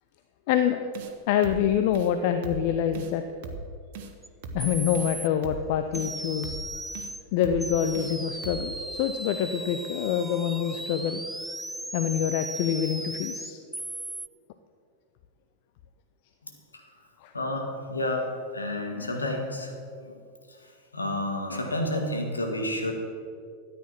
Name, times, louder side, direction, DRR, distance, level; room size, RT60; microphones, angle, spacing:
voice 1, 0.5-0.9 1.3-3.2 4.5-6.6 7.3-11.2 11.9-13.6 17.2-17.3, left 9 dB, 50° left, 8 dB, 0.6 m, -26 dB
sound 1, 0.9-1.1 1.4-1.7 1.9-2.1 2.4-2.7 2.9-3.1 3.4-3.7 3.9-4.1 4.4-4.7 4.9-5.1 5.4-5.7 5.9-6.1 6.4-6.7 6.9-7.1 7.4-7.7 7.9-8.1 8.4-8.7, right 4 dB, 50° right, 1.2 m, -38 dB
sound 2, 4.2-4.3 4.6-5.3 5.9-7.2 7.6-14.3, right 1 dB, 5° right, 0.5 m, -37 dB
voice 2, 17.3-20.1 20.5-22.9, left 1 dB, 80° left, 3 dB, 1.8 m, -31 dB
13.0 x 9.6 x 6.1 m, 2.4 s
figure-of-eight pair, 90°, 0 cm